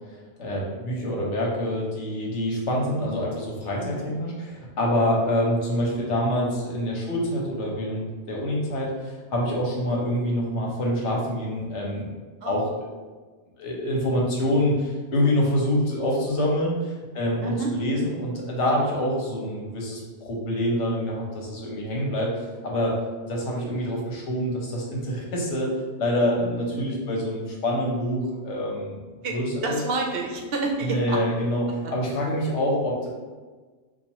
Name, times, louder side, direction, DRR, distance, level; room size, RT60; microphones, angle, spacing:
voice 1, 0.4-12.1 12.4-12.6 13.6-22.3 22.6-22.9 23.2-25.7 26.0-29.0 29.3-29.8 30.8-33.1, equal, 85° left, -2 dB, 1.2 m, -26 dB
voice 2, 3.8-4.1 12.4-12.6 17.4-17.7 29.2-29.4 29.6-31.2 31.8-31.9, right 3 dB, 65° right, 1 dB, 0.7 m, -29 dB
4.8 x 2.3 x 2.9 m, 1.4 s
omnidirectional pair, 1.2 m